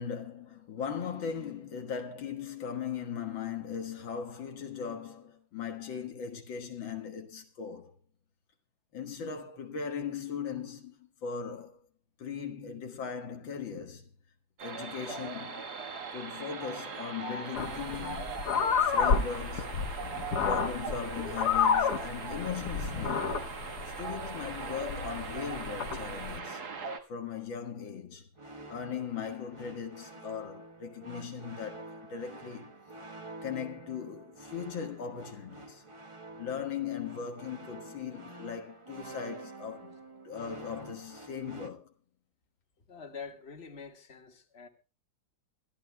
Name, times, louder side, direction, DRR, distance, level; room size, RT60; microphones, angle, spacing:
voice 1, 0.0-7.9 8.9-11.8 12.2-14.1 14.6-15.6 16.1-18.4 18.8-19.8 20.4-23.4 23.9-26.8 27.1-28.3 28.7-32.8 33.4-35.8 36.4-40.0 40.2-41.9, left 7 dB, 85° left, 2.4 m, -39 dB
sound 1, 14.6-27.0, right 4 dB, 55° right, 2.0 m, -40 dB
sound 2, 17.5-26.4, left 6 dB, 60° left, 1.6 m, -31 dB
sound 3, 28.3-41.7, right 2 dB, 20° right, 1.0 m, -48 dB
voice 2, 42.8-44.7, left 5 dB, 35° left, 2.0 m, -46 dB
25.5 x 12.0 x 2.2 m
omnidirectional pair, 2.1 m